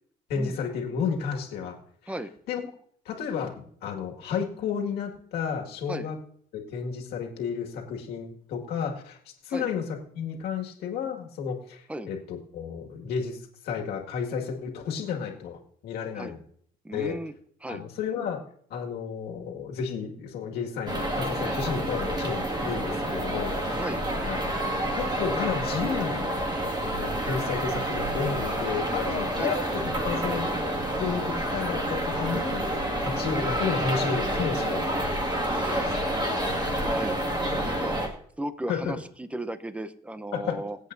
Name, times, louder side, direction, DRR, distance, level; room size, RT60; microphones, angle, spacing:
voice 1, 0.3-1.8 2.5-2.6 3.1-6.2 6.5-9.2 9.4-13.4 13.6-16.4 16.9-17.2 17.7-18.4 18.7-23.8 24.2-24.4 24.7-26.3 26.8-30.5 31.0-35.2 35.8-35.9 36.4-36.9 37.5-37.9 38.7-38.9 40.3-40.6, left 6 dB, 80° left, 1 dB, 2.0 m, -32 dB
voice 2, 16.8-17.3 17.6-17.8 23.8-24.0 29.4-29.5 35.0-35.2 35.5-36.1 36.7-37.2 37.5-38.0 38.4-40.8, right 1 dB, 10° right, 12 dB, 0.8 m, -35 dB
sound 1, 20.9-38.1, right 1 dB, 25° right, 2.0 m, -28 dB
24.0 x 8.2 x 2.7 m, 0.62 s
cardioid pair, 100°, 16 cm